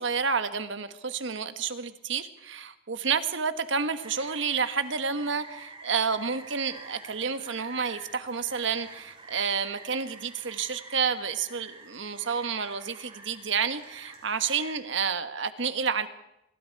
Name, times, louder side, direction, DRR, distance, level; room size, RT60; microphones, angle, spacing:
voice 1, 0.0-16.1, right 5 dB, 65° right, 10 dB, 1.4 m, -30 dB
Rain, 4.0-14.7, right 3 dB, 30° right, 5.7 m, -48 dB
26.5 x 21.0 x 4.7 m, 0.87 s
head